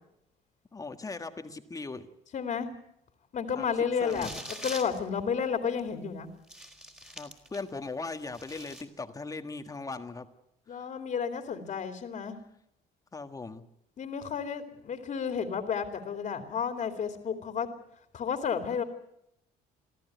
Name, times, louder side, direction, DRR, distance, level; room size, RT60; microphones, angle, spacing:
voice 1, 0.7-2.1 3.5-3.7 4.0-4.4 7.1-10.3 10.7-10.9 13.1-13.6, left 3 dB, 20° left, 7 dB, 1.6 m, -39 dB
voice 2, 2.3-2.7 3.3-6.3 10.7-12.4 14.0-17.7 18.1-18.8, left 6 dB, 45° left, 5 dB, 2.6 m, -32 dB
sound 1, 4.0-5.0 5.8-5.9 6.4-7.7 8.1-8.8, equal, 5° right, 4.0 m, -43 dB
24.0 x 14.5 x 9.3 m, 0.81 s
cardioid pair, 110°, 17 cm